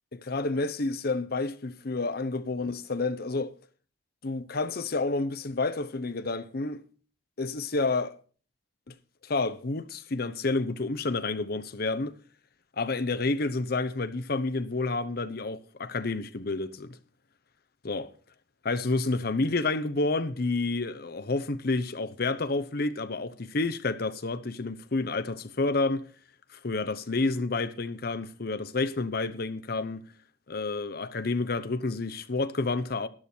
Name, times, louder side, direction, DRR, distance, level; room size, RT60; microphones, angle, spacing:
voice 1, 0.1-3.5 4.2-6.8 7.4-8.1 8.9-9.0 9.2-12.2 12.8-17.0 17.8-18.1 18.6-26.1 26.5-30.1 30.5-33.1, left 3 dB, 60° left, 0.8 m, -29 dB
12.5 x 11.5 x 4.4 m
head